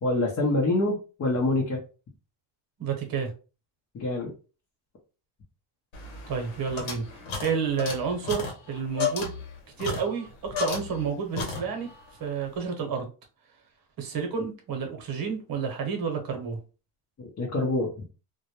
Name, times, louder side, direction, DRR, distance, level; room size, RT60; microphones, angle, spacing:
voice 1, 0.0-1.8 3.9-4.3 17.2-17.9, left 2 dB, 35° left, -2 dB, 0.7 m, -26 dB
voice 2, 2.8-3.3 6.3-9.3 9.8-11.9 12.2-13.1 14.0-16.6, right 6 dB, 45° right, 4 dB, 1.0 m, -30 dB
sound 1, 5.9-11.1 11.3-12.0, left 5 dB, 70° left, 1.0 m, -34 dB
2.2 x 2.0 x 2.9 m, 0.34 s
cardioid pair, 90°, 48 cm